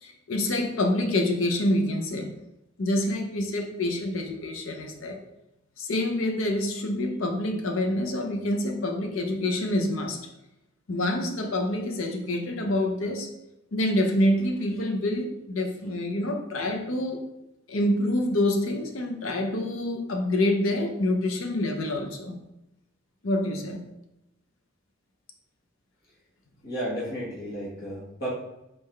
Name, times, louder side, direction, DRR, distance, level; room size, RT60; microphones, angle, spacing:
voice 1, 0.0-2.3 2.8-5.2 5.8-10.2 10.9-13.3 13.7-17.3 17.7-22.4 23.2-23.8, left 1 dB, 75° left, 3 dB, 0.6 m, -27 dB
voice 2, 26.6-28.3, equal, 50° left, -7 dB, 1.5 m, -33 dB
4.2 x 3.7 x 3.2 m, 0.87 s
head